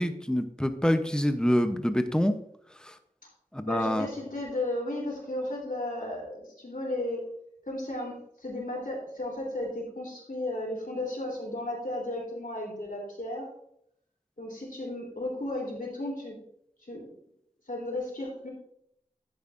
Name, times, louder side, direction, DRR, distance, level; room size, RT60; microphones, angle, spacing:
voice 1, 0.0-2.3 2.8-3.0 3.5-4.1, equal, 5° left, 9 dB, 0.8 m, -26 dB
voice 2, 3.7-7.2 7.7-13.4 14.4-16.3 16.8-17.1 17.7-18.5, left 1 dB, 85° left, -1 dB, 3.4 m, -34 dB
10.5 x 9.2 x 2.6 m, 0.71 s
wide cardioid pair, 40°, 14 cm